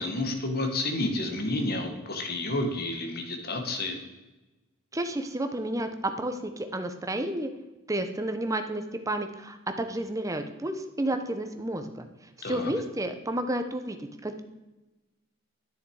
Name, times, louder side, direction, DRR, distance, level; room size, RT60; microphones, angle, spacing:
voice 1, 0.0-3.9 12.4-12.7, left 2 dB, 45° left, 4 dB, 1.5 m, -30 dB
voice 2, 4.9-7.5 7.9-12.1 12.4-14.4, right 1 dB, 15° right, 7 dB, 0.8 m, -31 dB
11.0 x 6.6 x 4.8 m, 1.1 s
head